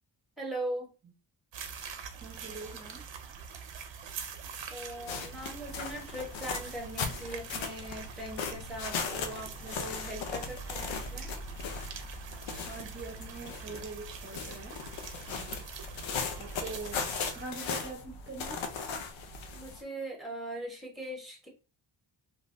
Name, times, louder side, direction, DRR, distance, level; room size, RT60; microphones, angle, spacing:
voice 1, 0.4-0.9 4.7-11.3 19.5-21.5, right 1 dB, ahead, -1 dB, 1.1 m, -40 dB
sound 1, 1.5-17.5, right 6 dB, 75° right, 0.7 m, -45 dB
voice 2, 2.2-3.0 12.7-14.8 15.3-15.6 16.4-18.7, right 3 dB, 25° right, -2 dB, 0.8 m, -43 dB
sound 2, 5.1-19.8, left 5 dB, 85° left, 0.7 m, -38 dB
3.3 x 2.5 x 2.5 m, 0.32 s
wide cardioid pair, 110°, 45 cm